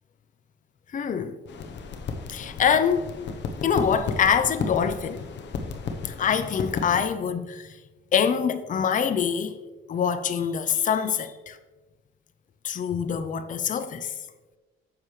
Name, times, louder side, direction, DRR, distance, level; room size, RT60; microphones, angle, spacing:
voice 1, 0.9-1.4 2.3-3.2 3.6-5.3 6.0-7.8 8.1-9.6 9.9-11.6 12.6-14.2, left 7 dB, 40° left, 0.6 m, -25 dB
sound 1, 1.5-7.1, left 5 dB, 65° left, 1.0 m, -34 dB
9.5 x 7.5 x 3.2 m
cardioid pair, 90°, 20 cm